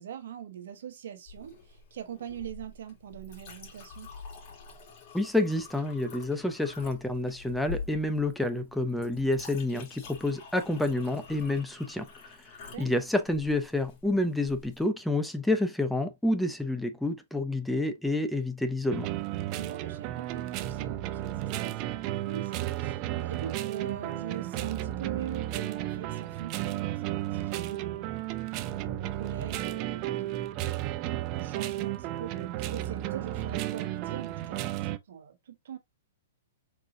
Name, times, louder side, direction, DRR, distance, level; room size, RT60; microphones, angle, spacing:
voice 1, 0.0-4.1 12.7-12.9 19.5-30.5 31.3-35.8, right 9 dB, 70° right, 1.1 m, -42 dB
Chink clink, 1.3-14.8, left 5 dB, 45° left, 2.8 m, -46 dB
voice 2, 5.1-12.4 12.8-19.1, left 2 dB, ahead, 0.7 m, -29 dB
sound 1, 18.9-35.0, right 14 dB, 40° right, 0.5 m, -33 dB
4.6 x 3.9 x 2.7 m
hypercardioid pair, 135°, 0 cm